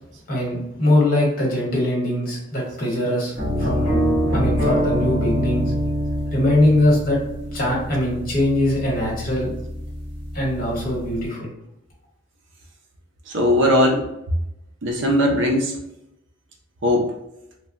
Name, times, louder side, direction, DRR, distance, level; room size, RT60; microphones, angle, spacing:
voice 1, 0.3-3.9 4.3-5.7 6.3-7.2 7.5-9.5 10.3-11.5, left 1 dB, 45° left, -4 dB, 1.1 m, -21 dB
sound 1, 3.4-11.3, equal, 25° right, 1.2 m, -25 dB
voice 2, 13.3-14.1 14.8-15.7 16.8-17.1, left 1 dB, 65° right, 0 dB, 0.6 m, -19 dB
3.1 x 2.2 x 2.4 m, 0.85 s
head